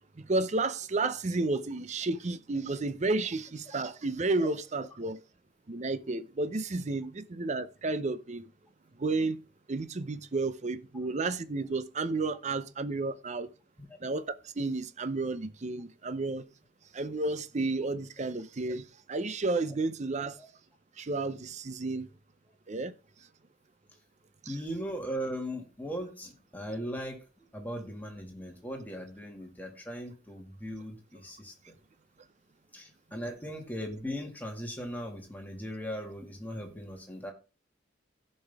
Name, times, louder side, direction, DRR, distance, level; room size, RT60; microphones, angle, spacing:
voice 1, 0.2-5.2 5.7-8.5 9.0-9.4 9.7-13.5 14.0-14.3 14.6-16.5 16.9-20.4 21.0-22.1 22.7-22.9 24.4-24.6, right 3 dB, 40° right, 0.6 m, -32 dB
voice 2, 24.5-27.2 27.5-31.5 32.7-37.3, equal, 10° left, 1.9 m, -38 dB
15.0 x 5.5 x 3.5 m
head